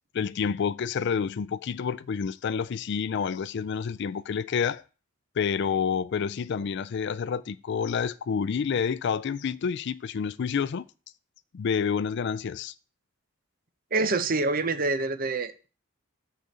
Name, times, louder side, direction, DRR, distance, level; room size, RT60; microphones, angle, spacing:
voice 1, 0.1-4.8 5.4-10.8 11.5-12.7, left 6 dB, 60° left, 0.4 m, -28 dB
voice 2, 13.9-15.7, right 3 dB, 45° right, 0.8 m, -26 dB
6.5 x 5.0 x 6.8 m
head